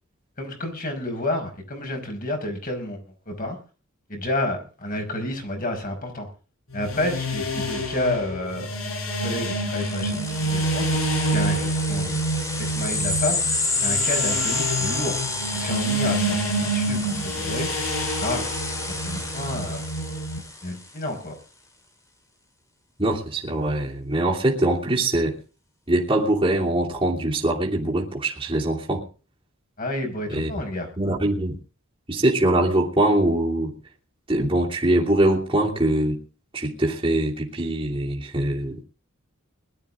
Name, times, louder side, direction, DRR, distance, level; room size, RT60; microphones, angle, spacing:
voice 1, 0.4-3.6 4.1-6.3 6.7-8.7 9.2-10.9 11.3-12.2 12.6-17.8 18.2-18.5 18.9-19.8 20.6-21.4 29.8-30.9, left 1 dB, 40° left, 4 dB, 5.2 m, -30 dB
sound 1, 6.7-20.4, right 1 dB, 70° left, 5.4 m, -27 dB
sound 2, 9.7-20.8, left 3 dB, 15° left, 2.4 m, -29 dB
voice 2, 23.0-25.4 25.9-29.0 30.3-30.5 31.0-31.6 32.1-33.7 34.3-36.2 36.5-38.8, right 1 dB, 25° right, -4 dB, 3.0 m, -23 dB
21.0 x 12.5 x 3.7 m, 0.36 s
head